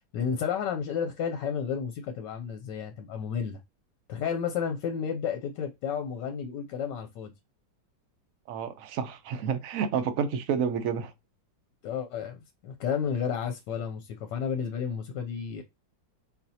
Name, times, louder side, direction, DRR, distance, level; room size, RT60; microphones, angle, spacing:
voice 1, 0.1-3.6 4.1-7.3 11.8-12.4 12.6-15.6, left 7 dB, 75° left, 1.2 m, -32 dB
voice 2, 8.5-11.1, right 7 dB, 65° right, 0.8 m, -29 dB
4.3 x 4.2 x 2.7 m
omnidirectional pair, 2.1 m